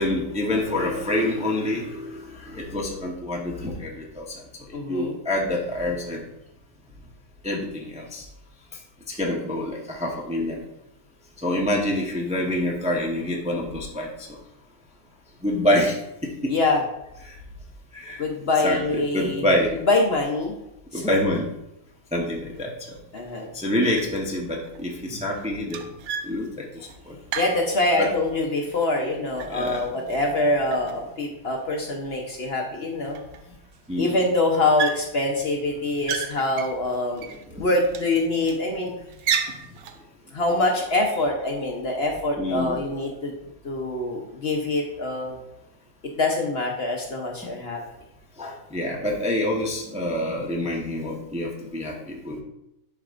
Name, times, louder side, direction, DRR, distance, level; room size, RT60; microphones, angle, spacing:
voice 1, 0.0-4.3 4.9-6.2 7.4-8.2 9.1-10.6 11.4-14.1 15.4-16.5 17.2-17.4 17.9-18.2 18.6-19.7 20.9-21.5 22.1-23.0 23.5-25.8 26.2-27.2 28.0-28.1 29.5-29.8 33.9-34.2 37.5-37.6 38.7-38.9 42.4-42.8 48.4-52.4, left 1 dB, 5° right, -1 dB, 0.7 m, -26 dB
voice 2, 4.7-5.1 16.5-16.8 18.2-19.5 19.9-20.6 20.9-21.2 23.1-23.5 27.4-33.2 34.0-37.3 37.6-38.9 40.3-43.3 43.6-45.3 46.2-47.8, left 2 dB, 50° left, 1 dB, 1.0 m, -24 dB
sound 1, 22.6-22.7 23.2-23.6 23.9-24.4 24.6-28.3 28.7-30.4 30.7-31.6 32.2-32.3 32.6-32.7 33.0-33.8 34.0-34.3 34.8-35.4 35.8-37.4 37.8-38.6 39.1-40.0, right 7 dB, 70° right, 1.0 m, -33 dB
11.0 x 4.7 x 2.5 m, 0.84 s
omnidirectional pair, 1.6 m